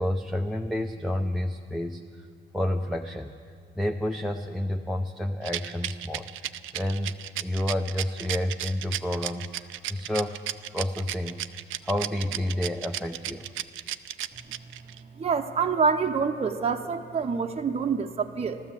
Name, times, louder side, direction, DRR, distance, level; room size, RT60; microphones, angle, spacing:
voice 1, 0.0-2.3 2.5-3.4 3.8-6.3 6.7-10.4 10.7-11.4 11.8-13.5, left 1 dB, ahead, 3 dB, 0.6 m, -30 dB
Rattle, 5.4-15.0, right 13 dB, 80° right, 0.5 m, -34 dB
voice 2, 15.2-18.6, right 5 dB, 30° right, 4 dB, 0.8 m, -26 dB
13.5 x 13.0 x 7.5 m, 2.2 s
cardioid pair, 90°, 20 cm